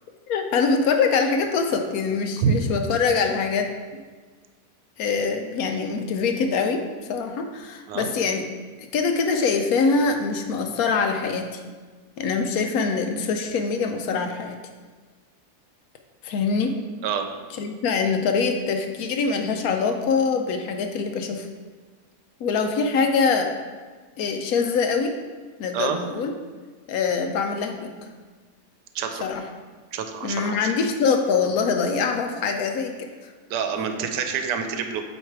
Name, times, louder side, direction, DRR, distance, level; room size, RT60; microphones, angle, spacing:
voice 1, 0.3-3.7 5.0-6.8 7.1-8.4 8.9-11.6 12.2-14.6 16.2-16.8 17.6-21.5 22.4-23.5 24.2-25.1 25.6-26.3 26.9-27.9 29.2-29.4 30.2-33.3, left 5 dB, 70° left, 5 dB, 1.0 m, -24 dB
voice 2, 29.9-30.7 33.5-35.0, right 7 dB, 85° right, 6 dB, 1.2 m, -26 dB
7.7 x 3.2 x 4.6 m, 1.4 s
omnidirectional pair, 1.8 m